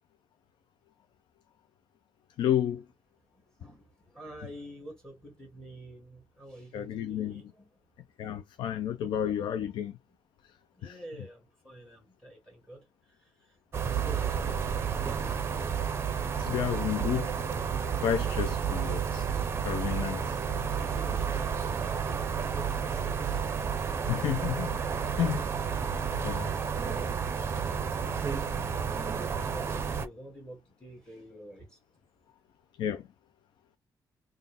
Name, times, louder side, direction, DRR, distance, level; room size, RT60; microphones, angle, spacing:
voice 1, 2.4-2.8 6.7-7.4 8.2-10.0 10.8-11.0 16.4-17.3 18.0-19.3 19.6-20.4 24.1-24.7 25.2-25.5 26.2-26.5 32.8-33.0, left 10 dB, 90° left, 0.4 m, -31 dB
voice 2, 3.3-7.7 10.1-10.2 10.7-13.6 13.8-15.5 20.2-23.6 29.5-31.8, right 1 dB, 10° left, 1.5 m, -49 dB
sound 1, 13.7-30.1, right 7 dB, 35° right, 0.5 m, -31 dB
4.0 x 2.3 x 3.5 m
wide cardioid pair, 155°, 8 cm